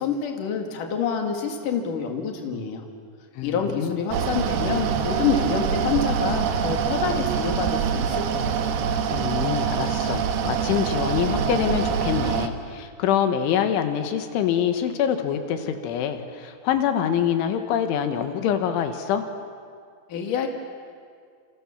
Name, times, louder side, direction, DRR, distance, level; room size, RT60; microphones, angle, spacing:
voice 1, 0.0-2.8 3.4-8.6 20.1-20.5, left 6 dB, 50° left, 3 dB, 3.5 m, -27 dB
voice 2, 3.4-4.0 9.1-19.3, left 9 dB, 90° left, 7 dB, 4.0 m, -25 dB
Mechanical fan, 4.1-12.5, right 7 dB, 65° right, 2.9 m, -25 dB
28.5 x 28.0 x 7.4 m, 2.1 s
omnidirectional pair, 5.3 m